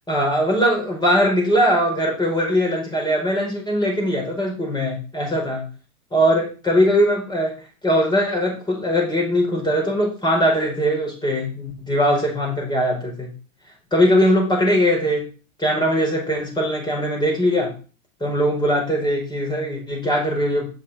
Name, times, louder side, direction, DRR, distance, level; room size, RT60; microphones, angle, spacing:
voice 1, 0.1-5.6 6.1-7.5 7.8-13.3 13.9-15.3 15.6-17.7 18.2-20.7, equal, 10° left, 0 dB, 5.1 m, -20 dB
9.2 x 7.5 x 4.3 m, 0.36 s
hypercardioid pair, 125°, 43 cm